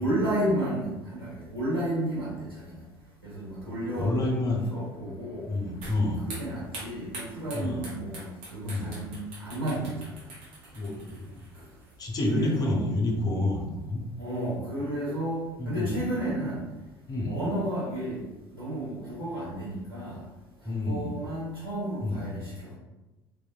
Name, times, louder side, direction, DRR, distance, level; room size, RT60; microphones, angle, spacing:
voice 1, 0.0-2.8 3.2-4.2 4.7-5.5 6.2-10.1 12.3-12.8 14.2-16.6 17.2-18.2 18.5-20.2 20.6-22.7, right 1 dB, 90° right, -10 dB, 1.1 m, -32 dB
voice 2, 3.5-4.6 5.5-6.2 7.5-7.8 8.7-8.9 10.7-11.4 12.0-14.0 15.6-16.0 17.1-17.3 20.6-21.1 22.0-22.2, left 2 dB, 30° left, -1 dB, 0.7 m, -29 dB
sound 1, 5.8-12.4, right 2 dB, 55° right, 1.0 m, -45 dB
2.9 x 2.2 x 2.2 m, 1.1 s
figure-of-eight pair, 60°, 12 cm